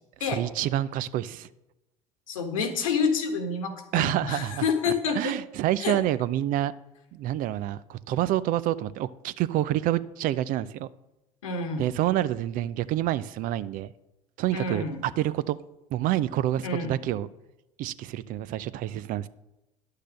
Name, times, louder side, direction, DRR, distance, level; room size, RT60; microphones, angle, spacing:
voice 1, 0.3-1.5 3.9-6.7 7.1-10.9 11.8-13.9 14.4-15.6 15.9-17.3 17.8-19.3, right 13 dB, 55° right, 16 dB, 0.5 m, -28 dB
voice 2, 2.3-5.4 5.8-6.0 11.4-11.8 14.5-15.0 16.6-16.9, left 5 dB, 85° left, 5 dB, 1.4 m, -28 dB
10.5 x 6.6 x 6.4 m, 0.96 s
hypercardioid pair, 75°, 17 cm